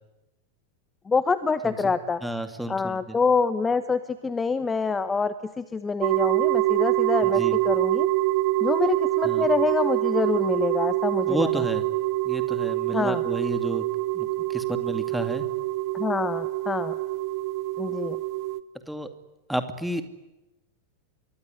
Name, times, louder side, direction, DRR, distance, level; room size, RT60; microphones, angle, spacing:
voice 1, 1.1-2.2 2.7-8.1 8.6-11.6 12.9-13.2 15.9-17.0 17.8-18.2, left 4 dB, 15° left, 13 dB, 1.2 m, -26 dB
voice 2, 2.2-3.2 7.2-7.6 9.2-9.5 11.3-11.9 12.2-13.8 14.1-15.5 18.9-19.1 19.5-20.0, right 1 dB, ahead, 8 dB, 2.4 m, -31 dB
sound 1, 6.0-18.6, right 17 dB, 45° right, 1.0 m, -25 dB
27.0 x 23.0 x 9.6 m, 0.99 s
figure-of-eight pair, 90°, 0 cm